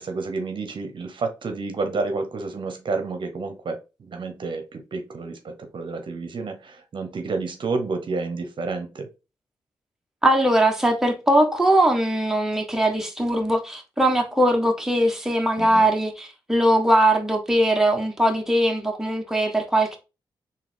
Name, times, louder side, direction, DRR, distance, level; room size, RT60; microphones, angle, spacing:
voice 1, 0.0-9.1 15.6-15.9, right 3 dB, 60° right, 0.8 m, -30 dB
voice 2, 10.2-20.0, right 1 dB, 5° right, 1.2 m, -20 dB
3.7 x 2.8 x 3.5 m
cardioid pair, 55°, 9 cm